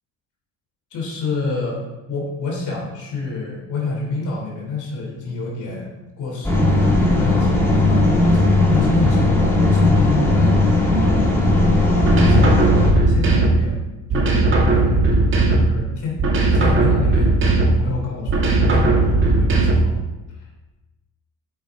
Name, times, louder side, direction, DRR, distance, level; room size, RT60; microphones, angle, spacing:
voice 1, 0.9-1.8 2.1-8.4 8.7-11.4 12.1-12.7 13.1-15.1 15.5-16.3 16.5-20.1 20.3-20.4, left 3 dB, 40° left, -2 dB, 3.3 m, -28 dB
sound 1, 6.4-12.9, left 2 dB, 5° left, 2.6 m, -16 dB
sound 2, 12.0-13.7 14.1-15.8 16.2-17.9 18.3-20.0, right 2 dB, 25° right, 1.6 m, -17 dB
13.0 x 9.0 x 4.7 m, 1.1 s
cardioid pair, 160°, 44 cm